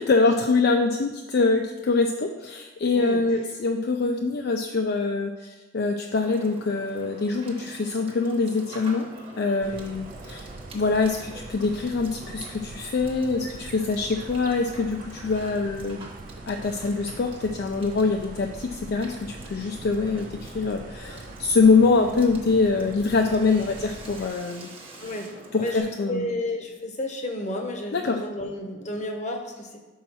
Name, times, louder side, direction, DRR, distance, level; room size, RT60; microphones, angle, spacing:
voice 1, 0.0-9.1 9.4-10.5 10.7-16.0 16.5-24.7 25.5-26.3 27.9-28.2, left 4 dB, 55° left, 4 dB, 0.4 m, -24 dB
Water / Water tap faucet / Sink (filling or washing), 6.1-25.8, right 2 dB, 30° right, 1.0 m, -46 dB
sound 1, 9.6-24.3, right 2 dB, 45° right, 0.4 m, -43 dB
voice 2, 25.0-29.8, left 1 dB, 35° left, 3 dB, 0.9 m, -32 dB
5.6 x 4.3 x 6.0 m, 1.2 s
head